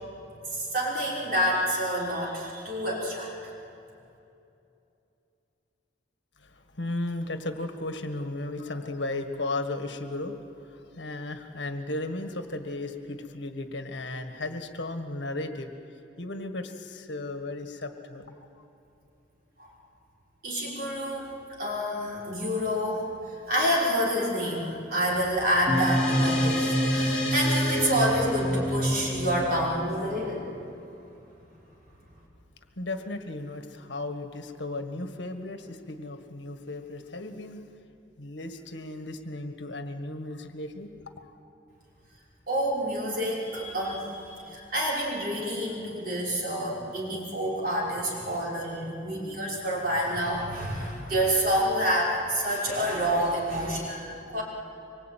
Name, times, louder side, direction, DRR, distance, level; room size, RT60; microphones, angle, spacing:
voice 1, 0.5-3.5 19.6-19.7 20.4-21.3 21.6-23.1 23.5-30.5 42.5-54.4, equal, 50° right, -4 dB, 5.5 m, -28 dB
voice 2, 6.4-18.6 32.7-37.6 38.2-41.3, left 2 dB, 75° left, 7 dB, 1.7 m, -35 dB
sound 1, 25.7-30.5, equal, 5° left, 3.8 m, -27 dB
24.5 x 23.0 x 9.3 m, 2.8 s
head